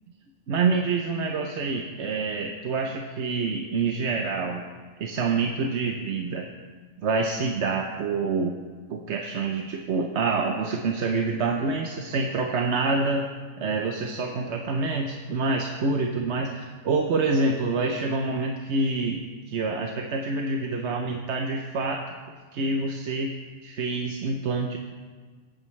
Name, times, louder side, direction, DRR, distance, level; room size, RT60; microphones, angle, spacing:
voice 1, 0.5-4.6 5.0-6.5 7.0-8.6 8.9-13.3 13.6-24.8, right 3 dB, 65° right, 2 dB, 1.0 m, -27 dB
21.5 x 8.9 x 3.2 m, 1.5 s
omnidirectional pair, 1.3 m